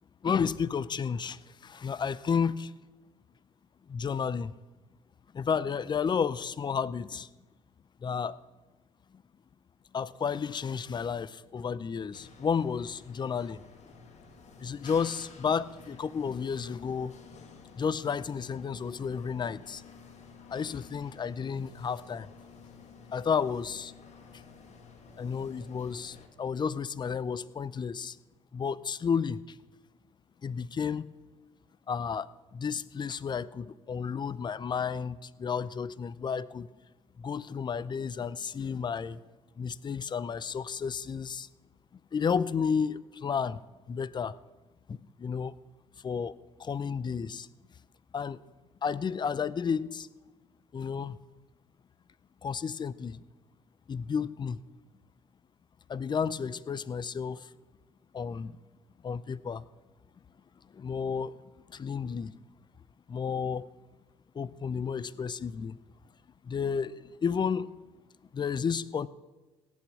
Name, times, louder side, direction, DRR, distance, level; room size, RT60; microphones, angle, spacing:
voice 1, 0.2-2.7 3.9-4.5 5.3-7.3 8.0-8.4 9.9-13.6 14.6-17.2 17.8-19.8 20.5-22.3 23.1-23.9 24.3-24.4 25.2-28.2 28.5-29.6 30.4-31.1 31.9-36.7 37.2-39.2 39.6-41.5 42.1-43.6 43.9-44.4 44.9-45.6 46.0-47.5 48.1-48.4 48.8-50.1 50.7-51.2 52.4-53.2 53.9-54.6 55.9-57.5 58.1-58.6 59.0-59.6 60.7-61.4 61.7-62.4 63.1-63.7 64.3-65.8 66.4-67.7 68.3-69.1, left 6 dB, 30° left, 19 dB, 0.6 m, -32 dB
sound 1, 12.1-26.3, left 5 dB, 50° left, 2.4 m, -52 dB
16.5 x 8.5 x 8.4 m, 1.2 s
hypercardioid pair, 55°, 15 cm